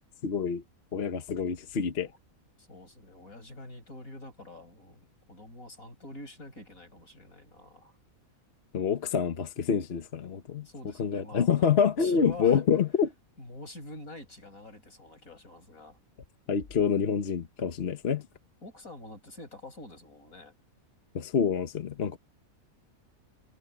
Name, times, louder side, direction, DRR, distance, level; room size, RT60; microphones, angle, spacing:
voice 1, 0.2-0.6 0.9-2.1 8.7-10.7 11.0-13.1 16.5-18.2 21.1-22.2, left 7 dB, 50° left, 1.2 m, -27 dB
voice 2, 2.6-8.0 10.6-11.7 12.0-12.6 13.4-16.0 18.6-20.5, left 2 dB, 75° left, 7.4 m, -46 dB
omnidirectional pair, 1.5 m